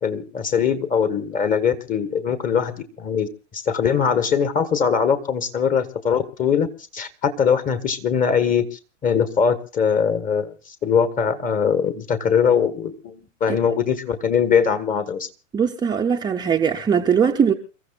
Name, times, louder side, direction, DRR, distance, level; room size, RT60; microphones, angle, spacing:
voice 1, 0.0-3.3 3.5-6.7 6.9-10.5 10.8-15.3, left 7 dB, 20° left, 1.4 m, -21 dB
voice 2, 15.5-17.5, right 7 dB, 10° right, 0.7 m, -20 dB
28.5 x 14.5 x 2.4 m
hypercardioid pair, 115°, 39 cm